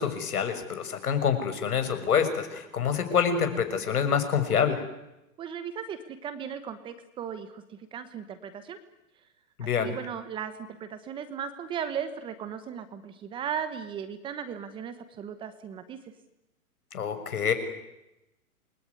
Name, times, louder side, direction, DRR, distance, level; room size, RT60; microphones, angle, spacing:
voice 1, 0.0-4.8 9.6-9.9 16.9-17.5, left 7 dB, 80° left, 8 dB, 6.3 m, -26 dB
voice 2, 5.4-8.8 9.6-16.0, right 8 dB, 10° right, 10 dB, 1.1 m, -37 dB
28.0 x 21.5 x 9.7 m, 0.93 s
hypercardioid pair, 160°, 44 cm